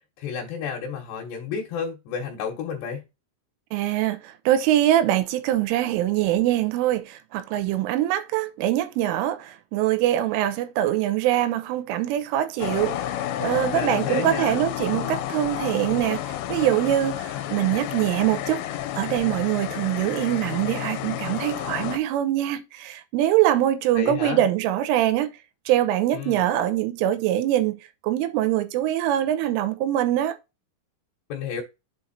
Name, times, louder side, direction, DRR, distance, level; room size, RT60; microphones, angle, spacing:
voice 1, 0.2-3.0 13.7-14.6 24.0-24.4 26.1-26.5 31.3-31.6, left 6 dB, 70° left, 3.0 m, -31 dB
voice 2, 3.7-13.1 13.4-25.3 25.7-30.4, right 13 dB, 80° right, 3.3 m, -23 dB
sound 1, 12.6-22.0, left 12 dB, 85° left, 3.2 m, -30 dB
8.1 x 3.9 x 4.1 m
omnidirectional pair, 5.8 m